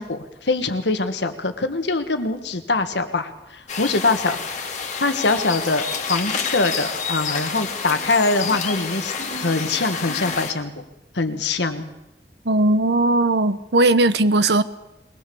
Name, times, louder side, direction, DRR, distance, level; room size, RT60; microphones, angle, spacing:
voice 1, 0.0-4.4 5.0-10.8 11.1-11.9, left 3 dB, 80° left, 1.6 m, -23 dB
sound 1, 3.7-10.5, left 5 dB, 45° left, 2.3 m, -28 dB
voice 2, 12.4-14.6, right 2 dB, 70° right, 0.9 m, -18 dB
22.0 x 19.5 x 7.0 m
head